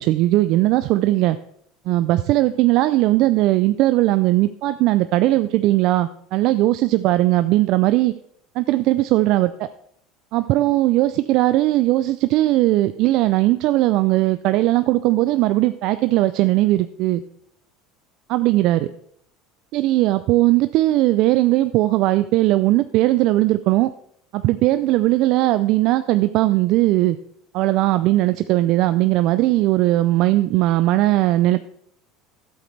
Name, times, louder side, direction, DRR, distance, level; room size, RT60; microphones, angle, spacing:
voice 1, 0.0-1.4 1.9-8.1 8.6-9.7 10.3-17.2 18.3-18.9 19.7-23.9 24.3-27.2 27.5-31.6, right 16 dB, 60° right, 12 dB, 0.4 m, -18 dB
12.5 x 7.9 x 3.3 m, 0.67 s
hypercardioid pair, 80°, 0 cm